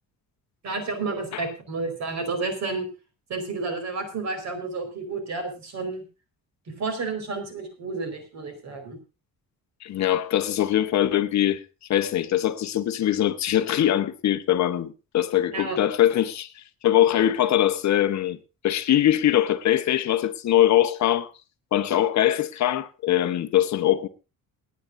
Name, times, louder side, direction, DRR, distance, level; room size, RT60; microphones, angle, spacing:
voice 1, 0.6-2.9 3.3-6.0 6.8-9.0 15.5-15.8, right 3 dB, 50° right, 4.7 m, -31 dB
voice 2, 9.8-11.6 11.9-18.4 18.6-21.3 21.7-24.1, left 12 dB, 50° left, 1.0 m, -22 dB
28.0 x 9.7 x 2.6 m
cardioid pair, 180°, 36 cm